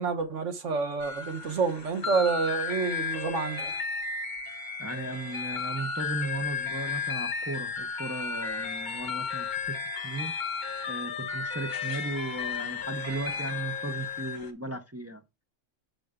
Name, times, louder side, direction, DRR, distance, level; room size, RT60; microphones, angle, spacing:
voice 1, 0.0-3.7, right 4 dB, 80° right, 1.5 m, -28 dB
sound 1, 1.0-14.5, left 5 dB, 40° left, 1.3 m, -34 dB
voice 2, 4.8-10.3 10.9-15.2, right 2 dB, 15° right, 0.7 m, -36 dB
6.7 x 5.2 x 3.7 m
omnidirectional pair, 1.2 m